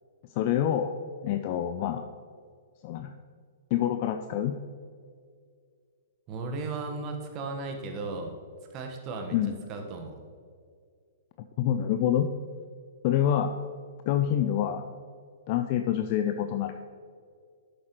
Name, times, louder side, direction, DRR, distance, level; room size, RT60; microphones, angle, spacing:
voice 1, 0.3-1.0 1.2-2.0 2.8-3.1 3.7-4.6 9.3-9.5 11.6-12.3 13.0-13.6 14.1-14.8 15.5-16.7, left 10 dB, 45° left, 7 dB, 0.4 m, -26 dB
voice 2, 6.3-8.4 8.7-10.2, right 3 dB, 35° right, 3 dB, 1.3 m, -36 dB
11.0 x 8.0 x 3.1 m, 2.1 s
figure-of-eight pair, 115°, 0 cm